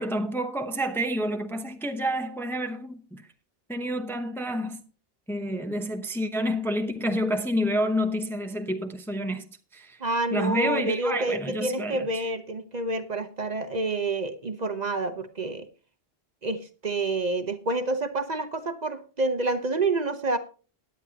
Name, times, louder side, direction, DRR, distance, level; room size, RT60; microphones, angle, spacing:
voice 1, 0.0-3.3 3.7-4.8 5.3-10.0 10.3-12.3, equal, ahead, 0.8 m, -29 dB
voice 2, 10.0-15.7 16.4-20.4, right 2 dB, 45° right, 1.0 m, -28 dB
16.5 x 9.9 x 2.9 m
omnidirectional pair, 1.0 m